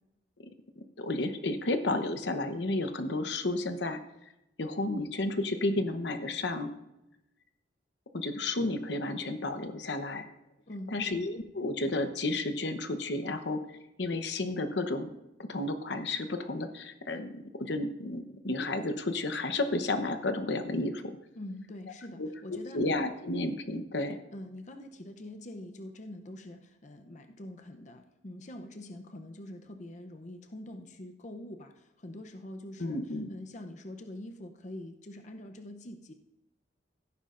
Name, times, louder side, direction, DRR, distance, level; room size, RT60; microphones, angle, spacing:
voice 1, 0.8-4.0 4.6-6.7 8.1-10.3 10.9-15.1 15.5-21.0 22.2-24.2 32.8-33.3, left 2 dB, 70° left, 9 dB, 1.0 m, -32 dB
voice 2, 10.7-11.2 21.4-22.9 24.3-33.0 33.3-36.1, left 1 dB, 40° left, 5 dB, 0.7 m, -44 dB
16.5 x 9.7 x 2.6 m, 0.92 s
head